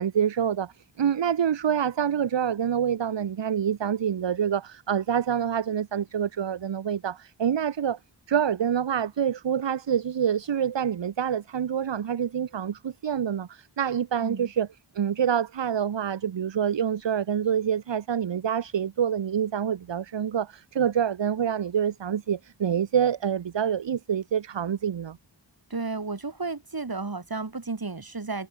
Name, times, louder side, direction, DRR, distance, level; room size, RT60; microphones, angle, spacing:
voice 1, 0.0-8.0 8.3-14.7 14.9-25.2, right 8 dB, 70° right, 0.9 m, -26 dB
voice 2, 25.7-28.5, right 3 dB, 50° right, 6.2 m, -33 dB
wide cardioid pair, 80°, 45 cm